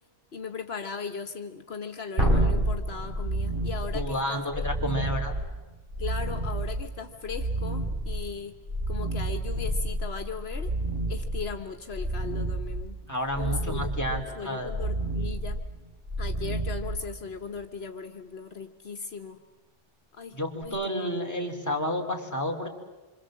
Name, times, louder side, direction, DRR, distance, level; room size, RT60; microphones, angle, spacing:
voice 1, 0.3-5.1 6.0-8.6 8.9-10.7 11.1-13.0 13.4-15.6 16.2-19.4 20.1-21.1, left 5 dB, 75° left, 6 dB, 1.5 m, -38 dB
sound 1, 2.2-17.5 20.6-20.7, right 1 dB, 55° right, 5.5 m, -30 dB
voice 2, 3.9-5.3 13.1-14.7 20.3-22.7, equal, 15° left, 2 dB, 3.2 m, -30 dB
27.0 x 25.5 x 7.6 m, 1.2 s
omnidirectional pair, 1.1 m